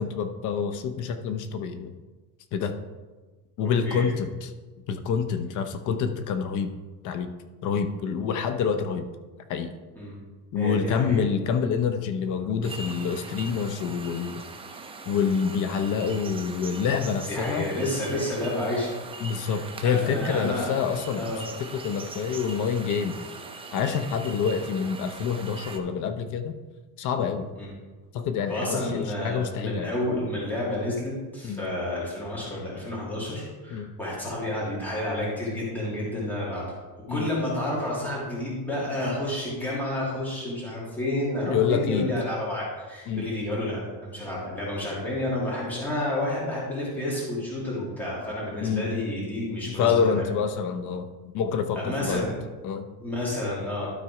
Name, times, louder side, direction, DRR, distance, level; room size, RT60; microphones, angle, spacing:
voice 1, 0.0-1.9 2.5-2.7 3.6-4.5 4.9-6.7 7.0-7.3 7.6-9.1 9.5-9.7 10.5-14.4 15.1-17.7 19.2-21.3 21.6-23.2 23.7-26.5 27.0-27.5 28.1-29.9 31.4-31.6 33.7-33.9 37.1-37.3 41.5-42.1 43.1-43.3 48.6-48.8 49.7-52.3 52.6-52.9, left 6 dB, 45° left, 9 dB, 0.7 m, -27 dB
voice 2, 10.5-11.2 17.3-18.9 19.4-19.6 19.8-20.7 21.2-21.4 27.6-27.7 28.5-36.7 37.1-50.3 51.8-52.3 53.0-53.9, left 1 dB, 5° left, -7 dB, 2.4 m, -30 dB
sound 1, 12.6-25.8, right 4 dB, 15° right, 0.5 m, -41 dB
12.5 x 4.1 x 4.8 m, 1.3 s
cardioid pair, 145°, 44 cm